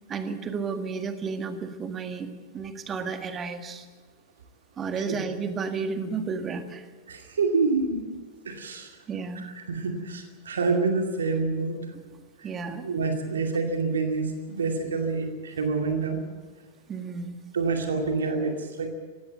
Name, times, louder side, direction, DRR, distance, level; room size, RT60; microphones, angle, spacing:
voice 1, 0.1-2.3 2.5-3.8 4.8-6.9 9.1-9.4 11.9-12.0 12.4-12.9 16.9-17.4, right 5 dB, 25° right, 7 dB, 1.8 m, -32 dB
voice 2, 7.1-8.0 8.5-9.0 9.4-11.7 12.8-16.2 17.5-18.9, right 4 dB, 70° right, 3 dB, 2.4 m, -27 dB
18.5 x 16.5 x 9.2 m, 1.4 s
figure-of-eight pair, 90°, 0 cm